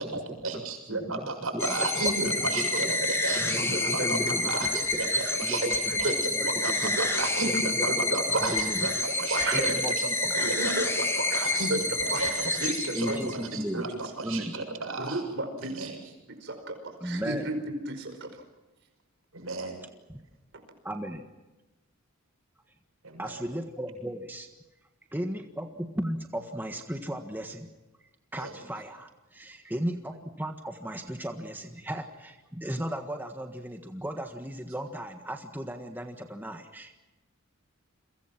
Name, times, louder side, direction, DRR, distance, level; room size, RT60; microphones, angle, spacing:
voice 1, 0.0-4.2 4.4-8.9 9.2-10.1 10.4-10.9 11.3-15.2 15.6-16.0 19.3-19.8 23.0-23.4 28.4-28.5, right 3 dB, 85° right, 4 dB, 7.1 m, -34 dB
voice 2, 0.9-2.9 3.4-5.0 5.4-6.9 7.4-8.9 9.5-10.3 12.9-13.9 14.2-14.5 17.0-17.5 20.1-20.2 20.8-21.3 23.2-24.5 25.1-27.7 28.3-36.9, equal, 10° right, 4 dB, 1.5 m, -36 dB
sound 1, 1.6-13.5, left 2 dB, 15° left, 2.8 m, -29 dB
voice 3, 6.6-7.0 7.9-8.5 9.3-9.7 10.3-10.8 11.2-11.8 12.1-12.3 12.6-13.4 15.0-15.9 16.4-16.8 17.0-17.6 17.9-18.3, right 2 dB, 60° right, 6 dB, 5.0 m, -33 dB
30.0 x 23.0 x 6.0 m, 1.1 s
head